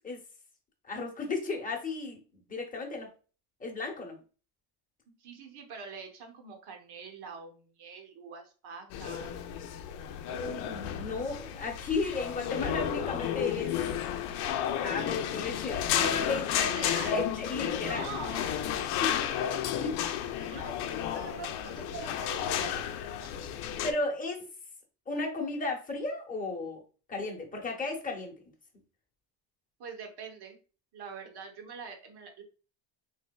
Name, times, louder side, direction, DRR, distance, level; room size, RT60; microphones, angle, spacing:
voice 1, 0.8-2.2 2.5-3.1 3.6-4.2 10.3-13.7 14.8-18.1 19.0-19.2 19.4-20.1 20.5-20.6 23.8-24.5 25.1-26.8 27.1-28.3, left 3 dB, 15° left, 0 dB, 0.9 m, -34 dB
voice 2, 5.1-9.3 16.5-17.3 17.7-18.6 20.3-23.3 29.8-30.6 30.9-32.4, right 5 dB, 50° right, 4 dB, 1.0 m, -44 dB
sound 1, 8.9-23.9, left 10 dB, 80° left, 0.6 m, -32 dB
3.4 x 3.2 x 2.2 m, 0.36 s
cardioid pair, 120°, 49 cm